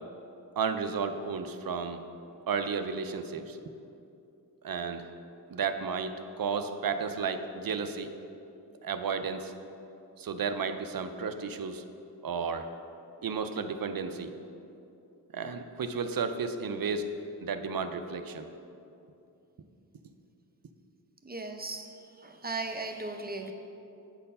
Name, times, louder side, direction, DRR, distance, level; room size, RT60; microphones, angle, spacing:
voice 1, 0.6-2.0 2.5-3.6 4.6-5.1 5.5-8.1 8.8-9.5 10.2-11.8 12.2-12.7 13.2-14.3 15.3-17.1 17.4-18.5, right 5 dB, 60° right, 8 dB, 0.6 m, -33 dB
voice 2, 21.3-21.9 22.2-23.5, right 3 dB, 25° right, 4 dB, 0.7 m, -36 dB
8.2 x 4.4 x 5.4 m, 2.7 s
cardioid pair, 50°, 40 cm